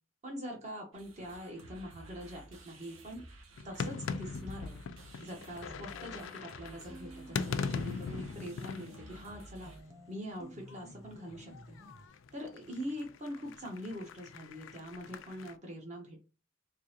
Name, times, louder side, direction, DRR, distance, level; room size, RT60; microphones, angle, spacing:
voice 1, 0.2-3.2 3.6-4.8 5.2-9.7 10.1-11.8 12.3-16.3, equal, 35° right, 1 dB, 0.9 m, -43 dB
sound 1, 0.9-9.8, right 2 dB, 85° right, 1.0 m, -54 dB
sound 2, 3.6-10.0 10.3-15.5, left 5 dB, 65° left, 0.3 m, -41 dB
sound 3, 5.2-6.4 6.9-12.1, equal, 15° right, 0.6 m, -54 dB
3.8 x 2.7 x 2.8 m, 0.32 s
head